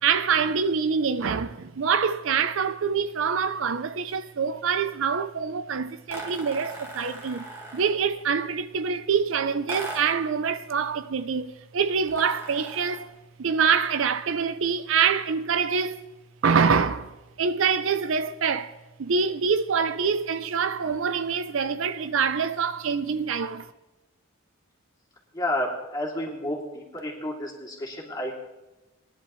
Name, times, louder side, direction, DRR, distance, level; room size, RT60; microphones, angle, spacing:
voice 1, 0.0-13.1 13.4-16.0 16.4-23.7, right 6 dB, 65° right, 0.5 m, -25 dB
sound 1, 6.1-8.1 9.7-10.3 12.1-13.1, right 1 dB, 10° right, 1.7 m, -39 dB
voice 2, 25.3-28.5, left 1 dB, 20° left, 2.6 m, -31 dB
20.5 x 10.5 x 3.1 m
head